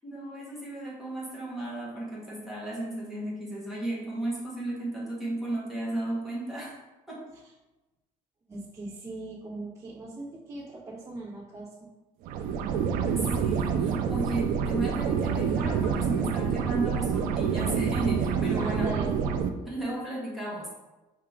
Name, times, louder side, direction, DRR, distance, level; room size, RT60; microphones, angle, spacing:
voice 1, 0.0-6.7 7.1-7.2 13.0-18.9 19.7-20.7, right 1 dB, ahead, -6 dB, 1.1 m, -34 dB
voice 2, 8.5-11.9 18.4-19.1, right 2 dB, 20° right, -11 dB, 1.3 m, -39 dB
sound 1, 12.2-19.5, right 7 dB, 75° right, 0.4 m, -27 dB
4.8 x 2.8 x 3.6 m, 1.1 s
cardioid pair, 165°, 15 cm